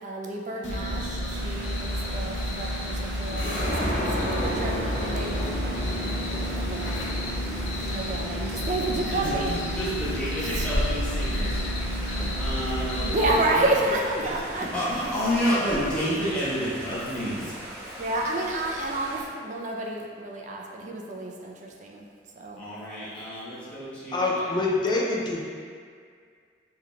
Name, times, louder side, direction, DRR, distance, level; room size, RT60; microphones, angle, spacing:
voice 1, 0.0-7.0 7.8-9.5 10.4-10.7 13.0-14.7 18.0-22.0 22.4-22.6, right 2 dB, 40° right, -1 dB, 0.4 m, -30 dB
sound 1, 0.6-13.4, equal, 75° left, 0.6 m, -31 dB
sound 2, 1.3-19.2, equal, 60° right, 0.9 m, -37 dB
sound 3, 3.2-16.8, equal, 55° left, 1.4 m, -36 dB
voice 2, 9.1-13.2 13.9-17.5 22.6-24.7, equal, 5° left, -11 dB, 0.9 m, -30 dB
voice 3, 24.1-25.5, left 2 dB, 25° left, -3 dB, 0.4 m, -25 dB
4.6 x 3.7 x 2.3 m, 2.1 s
head